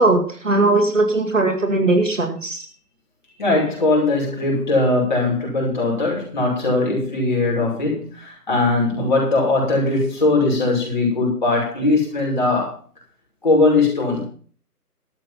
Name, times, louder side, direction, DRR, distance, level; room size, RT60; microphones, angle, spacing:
voice 1, 0.0-2.6, right 2 dB, 50° right, 5 dB, 2.4 m, -18 dB
voice 2, 3.4-12.7 13.4-14.2, left 2 dB, 30° left, -3 dB, 6.1 m, -20 dB
13.0 x 9.7 x 5.9 m, 0.42 s
figure-of-eight pair, 165°, 47 cm